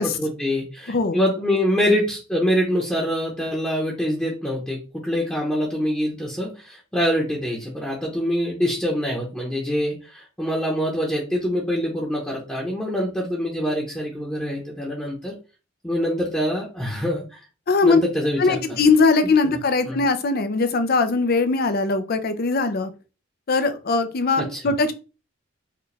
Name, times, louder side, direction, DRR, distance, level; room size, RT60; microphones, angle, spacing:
voice 1, 0.0-15.3 15.8-17.4 17.8-18.6 19.9-20.0 24.4-24.6, equal, 5° left, -4 dB, 0.9 m, -25 dB
voice 2, 0.9-1.2 17.7-18.0 18.4-22.9 23.5-24.9, left 4 dB, 50° left, 9 dB, 0.5 m, -20 dB
4.8 x 2.3 x 3.3 m, 0.32 s
head